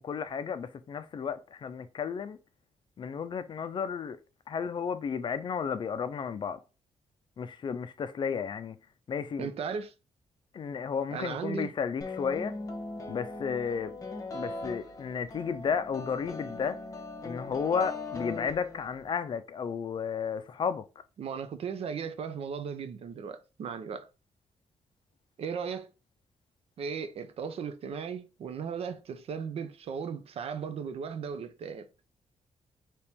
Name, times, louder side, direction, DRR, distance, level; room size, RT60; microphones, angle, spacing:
voice 1, 0.0-2.4 3.0-4.2 4.5-6.6 7.4-8.8 9.1-9.5 10.5-12.5 13.1-13.9 14.3-16.8 17.2-20.8, left 6 dB, 45° left, 0.4 m, -33 dB
voice 2, 9.4-9.9 11.1-11.7 21.2-24.1 25.4-25.9 26.8-31.9, right 6 dB, 60° right, 0.6 m, -36 dB
sound 1, 12.0-19.1, left 2 dB, 25° left, 0.9 m, -40 dB
3.5 x 2.9 x 4.3 m
wide cardioid pair, 150°, 12 cm